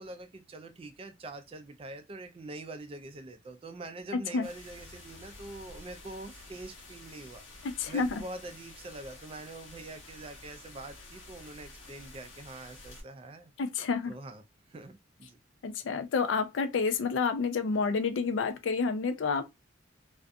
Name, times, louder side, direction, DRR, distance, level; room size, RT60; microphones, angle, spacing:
voice 1, 0.0-7.4 7.9-13.5 14.1-14.4 14.7-15.4, right 2 dB, 30° right, 0.3 m, -44 dB
sound 1, 4.4-13.0, left 2 dB, 90° left, 0.9 m, -50 dB
voice 2, 7.6-8.2 13.6-14.1 15.6-19.4, left 4 dB, 70° left, 0.4 m, -29 dB
2.4 x 2.2 x 2.5 m
head